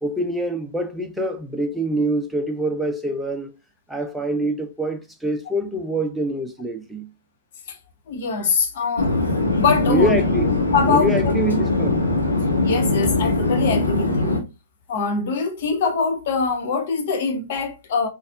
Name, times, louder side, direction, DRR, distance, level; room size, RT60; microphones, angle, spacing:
voice 1, 0.0-3.5 3.9-7.1 9.9-10.5 10.8-12.1, right 1 dB, ahead, 0.6 m, -25 dB
voice 2, 8.1-9.2 9.5-10.1 10.7-11.1 12.6-14.4 14.9-18.1, left 5 dB, 50° left, 0.9 m, -23 dB
Chatter / Fixed-wing aircraft airplane, 9.0-14.4, left 2 dB, 80° left, 0.9 m, -21 dB
4.1 x 2.5 x 2.6 m
figure-of-eight pair, 110°, 0 cm